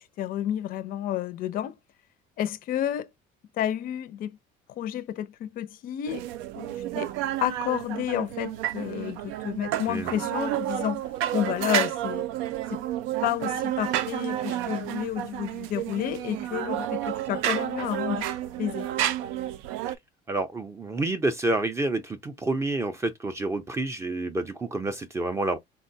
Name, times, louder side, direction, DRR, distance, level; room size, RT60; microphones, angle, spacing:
voice 1, 0.0-1.8 2.4-3.1 3.6-4.4 4.7-6.3 6.6-7.1 7.4-11.1 11.3-12.3 12.7-12.8 13.2-18.3 18.6-18.9, left 11 dB, 50° left, 0.4 m, -30 dB
sound 1, 6.1-19.9, right 12 dB, 85° right, 0.4 m, -30 dB
voice 2, 20.3-25.6, right 2 dB, 15° right, 0.4 m, -28 dB
3.8 x 2.1 x 2.6 m
cardioid pair, 150°, 19 cm